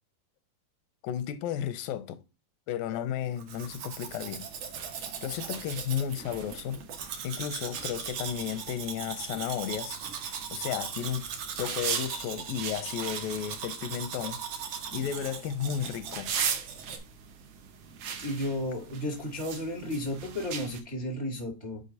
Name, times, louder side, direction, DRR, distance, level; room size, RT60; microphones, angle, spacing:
voice 1, 1.0-2.2 2.7-4.5 5.2-6.8 7.2-10.0 10.5-11.3 11.6-14.4 14.9-16.3, left 10 dB, 85° left, 2.3 m, -33 dB
Domestic sounds home sounds, 3.4-17.0, right 7 dB, 65° right, 1.5 m, -39 dB
sound 1, 3.5-20.8, right 7 dB, 90° right, 1.3 m, -40 dB
voice 2, 18.2-21.8, left 1 dB, 40° right, 0.9 m, -33 dB
7.6 x 4.8 x 2.7 m
omnidirectional pair, 4.0 m